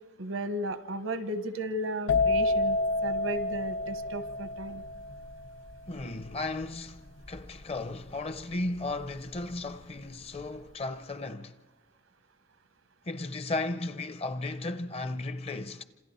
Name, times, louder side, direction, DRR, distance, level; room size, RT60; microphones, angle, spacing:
voice 1, 0.2-2.8 3.0-4.8, right 1 dB, 80° right, 0.9 m, -34 dB
sound 1, 2.1-9.7 9.9-10.4, left 2 dB, 85° left, 1.2 m, -30 dB
voice 2, 5.9-11.5 13.1-15.8, left 2 dB, 30° left, 0.6 m, -35 dB
27.5 x 27.0 x 4.2 m
head